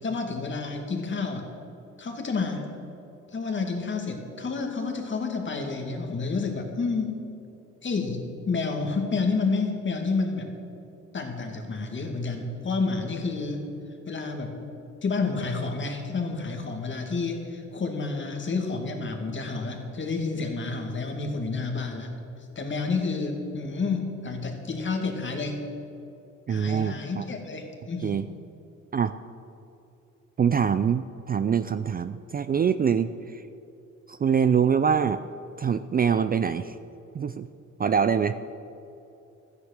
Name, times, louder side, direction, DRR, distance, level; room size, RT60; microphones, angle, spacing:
voice 1, 0.0-1.5 2.0-2.7 3.3-7.2 7.8-10.5 11.1-13.7 14.1-14.5 15.0-22.1 22.6-25.6 26.5-28.1, left 4 dB, 40° left, 3 dB, 2.3 m, -29 dB
voice 2, 26.5-27.2 28.0-28.3 28.9-29.1 30.4-33.4 34.1-35.2 35.6-36.8 37.1-37.5 37.8-38.4, right 7 dB, 30° right, 12 dB, 0.4 m, -24 dB
13.0 x 9.8 x 6.5 m, 2.9 s
cardioid pair, 90°, 30 cm